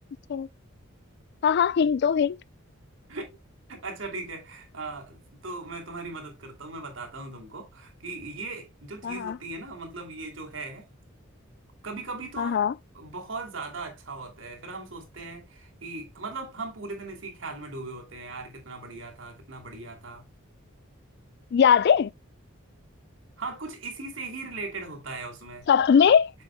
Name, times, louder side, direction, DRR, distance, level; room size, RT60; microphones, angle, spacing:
voice 1, 1.4-2.4 9.0-9.4 12.4-12.7 21.5-22.1 25.7-26.3, left 7 dB, 50° left, 0.3 m, -20 dB
voice 2, 3.7-10.9 11.8-12.6 12.9-20.2 23.4-25.6, right 3 dB, 65° right, 2.6 m, -38 dB
8.0 x 6.8 x 2.2 m
head